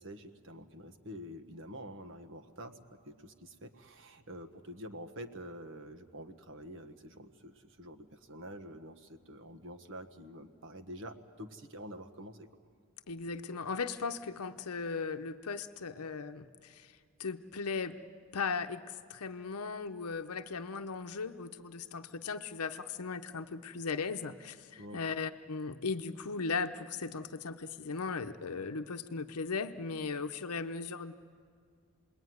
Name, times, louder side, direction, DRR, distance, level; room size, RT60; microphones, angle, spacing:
voice 1, 0.0-12.5 24.8-25.0, equal, 60° right, 7 dB, 1.4 m, -47 dB
voice 2, 13.1-16.9 17.2-18.0 18.3-31.1, left 4 dB, 90° left, 7 dB, 0.8 m, -37 dB
28.5 x 21.0 x 9.5 m, 2.1 s
head